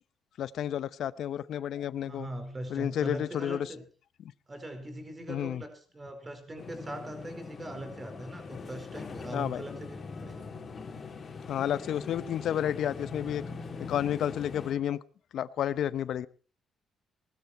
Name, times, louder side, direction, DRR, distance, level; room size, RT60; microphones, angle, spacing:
voice 1, 0.4-2.3 2.7-3.7 4.2-4.3 5.3-5.6 9.3-9.6 11.5-13.4 13.9-15.0 15.3-16.3, left 10 dB, 70° left, 17 dB, 0.8 m, -31 dB
voice 2, 2.0-3.8 4.5-10.0 10.2-10.5, right 1 dB, 25° right, 7 dB, 4.7 m, -41 dB
sound 1, 6.6-14.7, left 4 dB, 40° left, 3.6 m, -42 dB
19.0 x 13.0 x 4.4 m, 0.39 s
cardioid pair, 90°, 0 cm